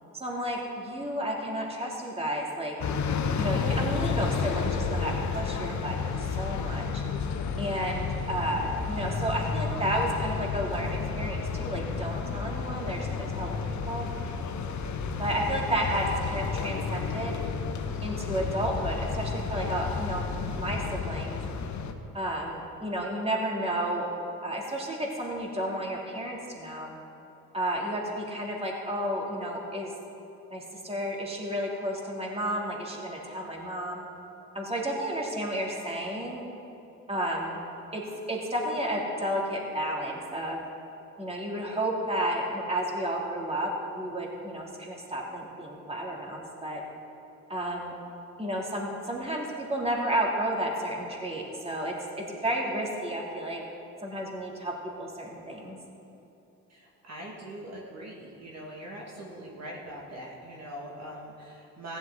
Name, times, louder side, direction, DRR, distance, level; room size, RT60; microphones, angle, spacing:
voice 1, 0.1-2.8 3.4-7.0 7.6-14.1 15.2-17.4 18.0-20.3 20.6-21.4 22.1-24.1 24.4-26.9 27.5-29.9 30.5-34.0 34.5-36.4 37.1-37.6 37.9-38.0 38.3-40.6 41.2-46.8 47.5-47.9 48.4-53.6 54.0-55.8, right 1 dB, 15° right, -2 dB, 2.8 m, -32 dB
sound 1, 2.8-21.9, left 5 dB, 55° left, 1.1 m, -31 dB
voice 2, 56.7-62.0, right 1 dB, 50° right, -3 dB, 2.2 m, -42 dB
15.5 x 11.0 x 3.9 m, 2.9 s
supercardioid pair, 60°, 34 cm